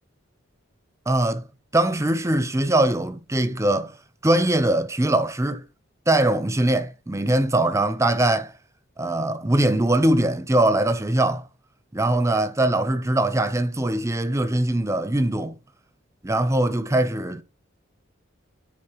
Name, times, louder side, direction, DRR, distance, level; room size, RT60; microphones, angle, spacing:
voice 1, 1.1-1.5 1.7-3.9 4.2-5.6 6.1-8.5 9.0-11.4 11.9-15.5 16.2-17.4, right 1 dB, 15° right, 0.7 m, -21 dB
13.0 x 4.3 x 3.0 m
head